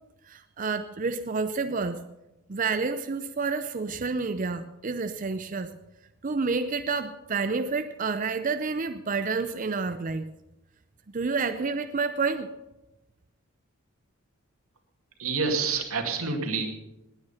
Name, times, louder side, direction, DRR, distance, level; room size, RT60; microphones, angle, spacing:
voice 1, 0.3-2.0 2.5-5.7 6.2-10.3 11.1-12.5, right 4 dB, 40° right, 9 dB, 0.5 m, -29 dB
voice 2, 15.2-16.7, right 4 dB, 90° right, 3 dB, 2.3 m, -27 dB
19.5 x 9.1 x 5.6 m, 0.98 s
head